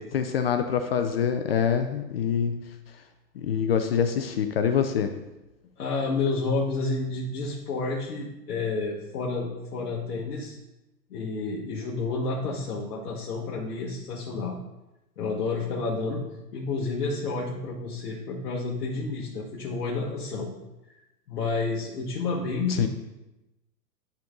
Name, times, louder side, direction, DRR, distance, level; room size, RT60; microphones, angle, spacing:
voice 1, 0.1-2.6 3.4-5.1 22.7-22.9, left 7 dB, 40° left, 8 dB, 0.4 m, -25 dB
voice 2, 5.8-10.6 11.1-14.6 15.2-16.2 16.5-20.5 20.8-20.9 21.3-22.9, left 3 dB, 70° left, -4 dB, 1.4 m, -30 dB
10.5 x 3.9 x 3.6 m, 0.96 s
hypercardioid pair, 135°, 49 cm